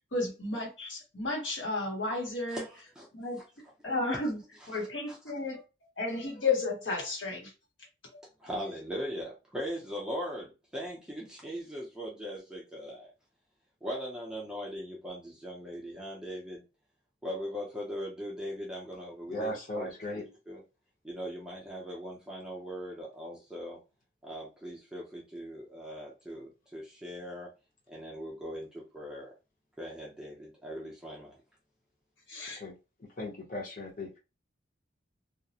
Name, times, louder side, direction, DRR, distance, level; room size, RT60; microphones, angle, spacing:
voice 1, 0.1-2.6 3.1-3.4 3.8-4.4 4.7-5.6 6.0-7.5 32.3-32.6, left 3 dB, 80° left, 1.1 m, -32 dB
voice 2, 2.5-3.1 4.7-5.2 8.4-13.1 13.8-16.6 17.2-19.5 19.8-19.9 20.5-20.6 21.0-23.8 24.2-27.5 27.9-29.3 29.8-31.4, equal, 5° right, 0.5 m, -40 dB
voice 3, 19.3-20.2 32.6-32.7 33.2-34.2, left 1 dB, 45° left, 0.8 m, -37 dB
2.3 x 2.0 x 2.7 m
head